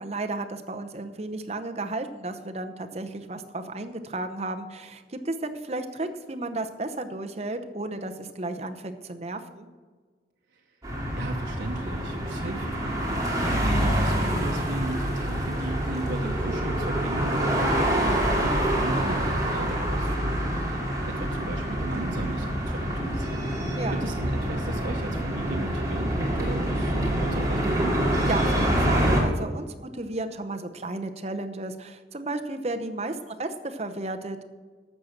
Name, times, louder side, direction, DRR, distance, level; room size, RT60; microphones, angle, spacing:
voice 1, 0.0-9.7 23.8-24.1 28.3-34.4, right 2 dB, 35° right, 7 dB, 0.8 m, -33 dB
sound 1, 10.8-29.2, right 1 dB, 20° right, 2.4 m, -26 dB
voice 2, 11.1-12.9 13.8-23.5 23.9-28.0, right 2 dB, 80° right, 1 dB, 0.9 m, -36 dB
12.5 x 7.4 x 6.5 m, 1.4 s
head